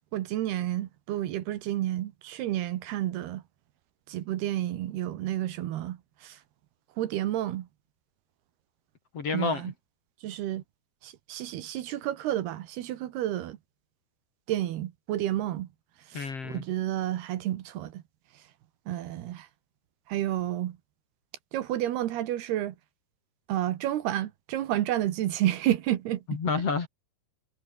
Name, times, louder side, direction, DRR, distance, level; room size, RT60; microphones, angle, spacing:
voice 1, 0.1-3.4 4.1-6.4 7.0-7.7 9.3-9.7 10.2-10.6 11.0-13.6 14.5-15.7 16.1-18.0 18.9-19.5 20.1-20.8 21.5-22.8 23.5-26.4, right 13 dB, 75° right, 3.2 m, -30 dB
voice 2, 9.1-9.6 16.1-16.6 26.3-26.9, left 5 dB, 40° left, 3.3 m, -29 dB
omnidirectional pair, 4.9 m